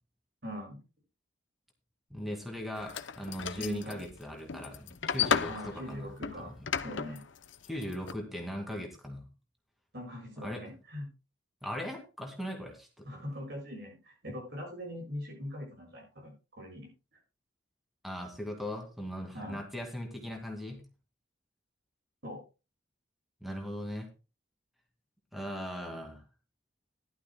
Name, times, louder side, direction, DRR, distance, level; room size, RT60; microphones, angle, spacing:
voice 1, 0.4-0.8 3.5-4.1 5.5-6.5 6.8-7.2 9.9-11.1 13.0-16.9 19.3-19.6 22.2-22.4, equal, 60° right, 0 dB, 7.2 m, -42 dB
voice 2, 2.1-6.1 6.4-6.5 7.6-9.2 10.4-10.6 11.6-13.2 18.0-20.8 23.4-24.1 25.3-26.2, equal, ahead, 2 dB, 2.2 m, -39 dB
sound 1, 2.8-8.1, left 7 dB, 75° left, 0.7 m, -34 dB
16.0 x 12.0 x 2.3 m, 0.30 s
head